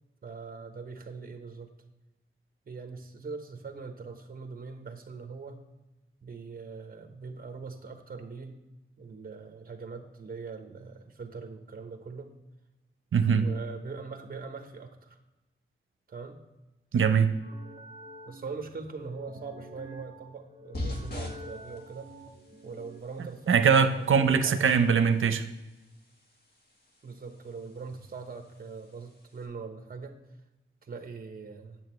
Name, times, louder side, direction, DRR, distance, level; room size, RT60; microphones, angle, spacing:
voice 1, 0.2-1.7 2.6-5.6 6.2-8.6 9.0-12.3 13.3-15.2 16.1-16.4 18.3-22.1 22.6-24.7 27.0-30.2 30.8-31.8, right 4 dB, 45° right, 5 dB, 1.1 m, -42 dB
voice 2, 13.1-13.5 16.9-17.3 23.5-25.4, right 6 dB, 80° right, 10 dB, 0.7 m, -22 dB
sound 1, 17.4-23.0, equal, 10° right, 1.2 m, -49 dB
sound 2, 20.7-29.4, left 1 dB, 50° left, 1.6 m, -44 dB
9.2 x 8.4 x 3.1 m, 1.0 s
wide cardioid pair, 180°, 20 cm